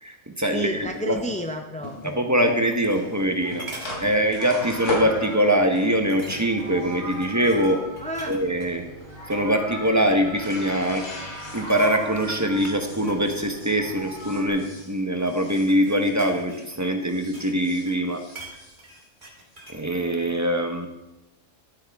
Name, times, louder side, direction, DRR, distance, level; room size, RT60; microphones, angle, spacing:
voice 1, 0.0-1.2 2.0-3.7 4.0-7.8 8.3-8.8 9.3-11.1 11.5-18.2 19.7-20.9, equal, 15° right, 4 dB, 1.0 m, -23 dB
voice 2, 0.5-2.3 8.0-8.4, equal, 10° left, 4 dB, 0.3 m, -31 dB
sound 1, 0.7-16.7 17.0-19.6, equal, 90° left, 3.3 m, -39 dB
sound 2, 2.8-3.3 3.6-4.0 4.5-4.7 5.1-5.2 6.1-6.7 7.1-8.7 9.2-9.5 9.8-10.4 10.9-11.2 11.4-12.0 12.7-14.4 15.2-17.6 17.9-19.9 20.2-20.3, right 2 dB, 40° right, 2.3 m, -44 dB
Meow, 3.4-3.7 4.2-5.7 6.4-8.7 9.0-10.9 11.4-13.0 13.5-14.5, right 2 dB, 75° right, 3.3 m, -38 dB
13.0 x 8.8 x 3.6 m, 0.98 s
omnidirectional pair, 1.3 m